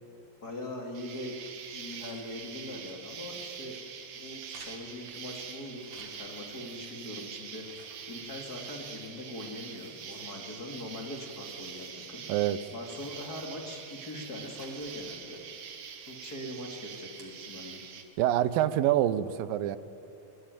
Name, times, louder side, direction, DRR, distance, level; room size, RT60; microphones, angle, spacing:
voice 1, 0.4-1.4 1.7-3.8 4.1-7.8 8.1-12.2 12.7-15.4 16.0-17.8, left 1 dB, 30° left, 1 dB, 2.9 m, -41 dB
Insect, 0.9-18.0, right 7 dB, 65° right, 3.1 m, -44 dB
sound 1, 1.1-3.0 3.3-3.9 4.4-6.5 6.9-8.8 9.1-9.2 9.6-10.8 11.1-11.9 12.2-12.3 12.8-14.0 14.3-15.2 15.9-16.3 16.8-17.3, right 3 dB, 40° right, 4.2 m, -58 dB
voice 2, 18.2-19.8, right 12 dB, 85° right, 15 dB, 2.6 m, -26 dB
25.5 x 21.5 x 9.2 m, 2.6 s
omnidirectional pair, 3.9 m